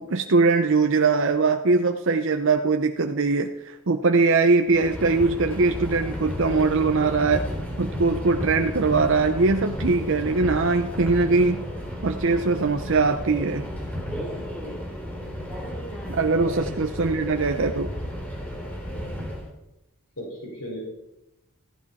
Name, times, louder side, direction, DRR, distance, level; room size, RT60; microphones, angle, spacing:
voice 1, 0.0-7.4 7.8-11.6 12.0-13.7 16.1-17.9, right 3 dB, 55° right, 5 dB, 0.7 m, -21 dB
Subway metro underground, 4.7-19.5, equal, 5° left, 2.9 m, -33 dB
voice 2, 16.4-16.8 20.2-20.8, equal, 70° left, -2 dB, 5.3 m, -36 dB
16.0 x 14.5 x 4.2 m, 0.90 s
head